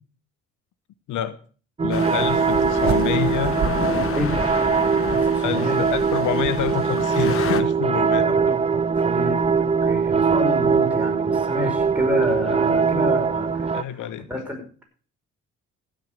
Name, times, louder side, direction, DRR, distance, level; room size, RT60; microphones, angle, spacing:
voice 1, 1.8-3.6 5.4-8.4 13.7-14.2, left 10 dB, 80° left, 14 dB, 0.9 m, -27 dB
sound 1, 1.8-13.8, right 5 dB, 20° right, 0.5 m, -21 dB
sound 2, 1.9-7.6, left 7 dB, 45° left, 1.3 m, -31 dB
sound 3, 2.8-5.2, right 5 dB, 65° right, 1.9 m, -31 dB
voice 2, 5.1-5.8 8.2-14.8, left 1 dB, 5° right, 1 dB, 5.4 m, -30 dB
15.5 x 6.6 x 6.5 m, 0.40 s
cardioid pair, 90°, 30 cm